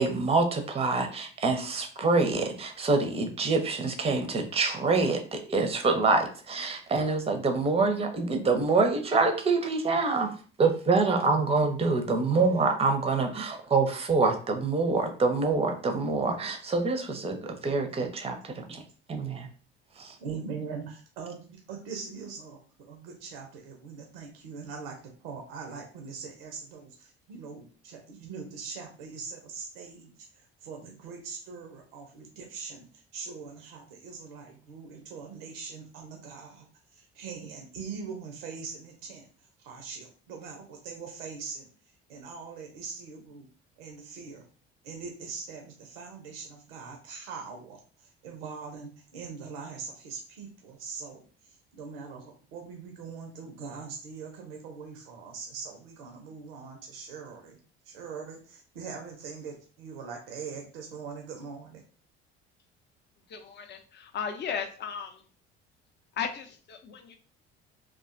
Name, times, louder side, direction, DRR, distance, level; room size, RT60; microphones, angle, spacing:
voice 1, 0.0-10.3 10.6-18.8 19.1-19.5 20.0-20.1, right 3 dB, 20° right, 6 dB, 0.5 m, -26 dB
voice 2, 20.2-25.0 25.2-36.7 36.9-39.3 39.6-41.7 42.1-43.5 43.8-44.4 44.8-57.6 57.8-61.8, right 5 dB, 80° right, 2 dB, 0.6 m, -42 dB
voice 3, 63.3-65.2 66.2-67.2, left 7 dB, 35° left, 7 dB, 0.5 m, -35 dB
2.4 x 2.2 x 2.4 m, 0.40 s
hypercardioid pair, 60°, 29 cm